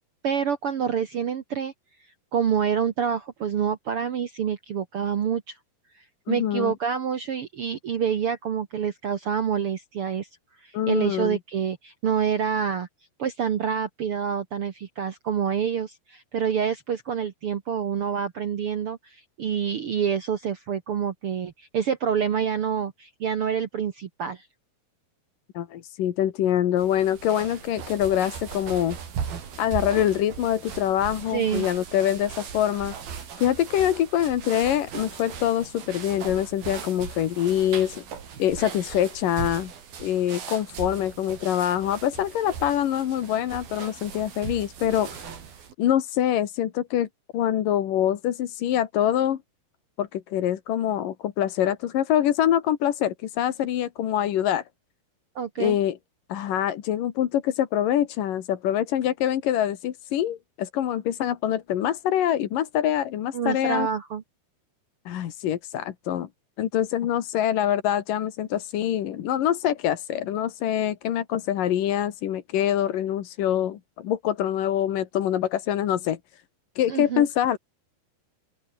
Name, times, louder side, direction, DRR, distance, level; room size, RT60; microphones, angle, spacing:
voice 1, 0.2-1.7 2.3-5.6 6.3-10.3 10.6-12.9 13.2-24.5 31.3-31.7 55.3-55.8 63.3-64.2 76.9-77.3, right 7 dB, 80° right, 1.2 m, -27 dB
voice 2, 6.3-6.7 10.7-11.4 25.5-29.0 29.6-32.9 33.4-38.0 38.4-39.7 40.0-45.3 45.8-47.1 47.3-49.4 50.0-54.6 55.6-56.0 56.3-63.9 65.1-66.3 66.6-76.2 76.8-77.6, left 11 dB, 60° left, 3.0 m, -25 dB
sound 1, 26.8-45.7, right 7 dB, 65° right, 5.3 m, -38 dB
open air
omnidirectional pair, 4.7 m